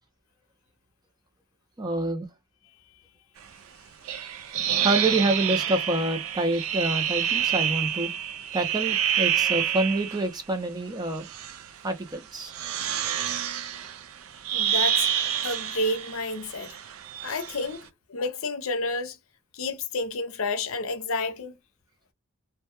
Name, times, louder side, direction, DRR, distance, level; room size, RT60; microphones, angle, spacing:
voice 1, 1.8-2.3 4.7-8.1 8.5-11.3 11.8-12.5, right 2 dB, 20° right, 0.6 m, -27 dB
sound 1, 4.1-10.3 11.1-11.7 12.4-17.8, right 9 dB, 75° right, 0.4 m, -28 dB
voice 2, 14.5-15.1 15.4-16.8 17.2-19.2 19.5-21.6, left 2 dB, 80° left, 0.6 m, -30 dB
2.2 x 2.2 x 2.8 m
head